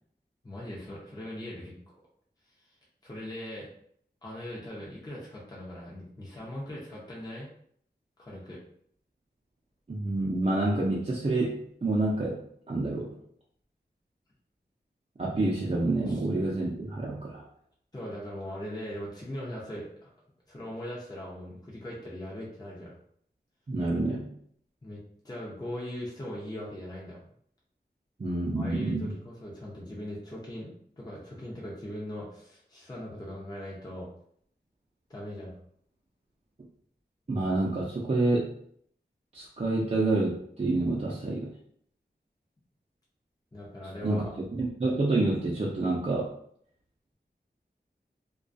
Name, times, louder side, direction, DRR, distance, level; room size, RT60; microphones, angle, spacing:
voice 1, 0.4-1.7 2.4-2.8 3.0-3.7 4.2-7.5 8.2-8.6 16.1-16.3 17.9-20.1 20.5-23.0 24.8-27.2 28.6-34.1 35.1-35.6 43.5-44.4, left 1 dB, 20° left, -5 dB, 0.6 m, -40 dB
voice 2, 9.9-13.1 15.2-17.5 23.7-24.3 28.2-29.1 37.3-38.5 39.3-41.5 44.0-44.2 44.6-46.3, right 2 dB, 35° right, -5 dB, 0.4 m, -28 dB
2.3 x 2.2 x 2.5 m, 0.65 s
wide cardioid pair, 50°, 18 cm